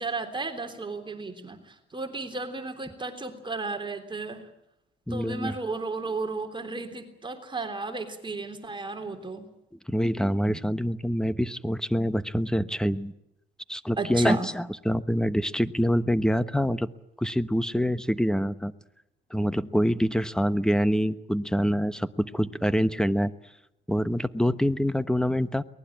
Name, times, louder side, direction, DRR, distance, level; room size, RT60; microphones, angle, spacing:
voice 1, 0.0-4.4 5.1-9.5 14.0-14.5, right 3 dB, 25° right, 5 dB, 3.5 m, -34 dB
voice 2, 5.1-5.5 9.9-13.1 13.7-16.9 17.2-18.7 19.3-23.3 23.9-25.6, equal, 5° left, 13 dB, 1.2 m, -25 dB
23.5 x 19.5 x 8.8 m, 0.83 s
cardioid pair, 90°, 20 cm